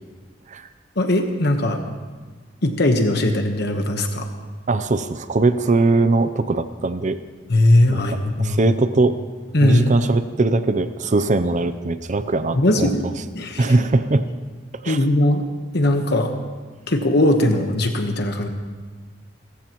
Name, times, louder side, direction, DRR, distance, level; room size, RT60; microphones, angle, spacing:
voice 1, 1.0-1.8 2.6-4.3 7.5-8.6 9.5-9.9 12.5-13.0 13.3-13.8 14.8-15.4 15.7-16.3 16.9-18.5, left 1 dB, 65° left, 5 dB, 1.2 m, -19 dB
voice 2, 4.7-7.2 7.9-9.2 9.6-13.1 13.6-14.2 14.8-15.0, right 3 dB, 40° right, 11 dB, 0.6 m, -20 dB
27.5 x 14.5 x 3.0 m, 1.4 s
head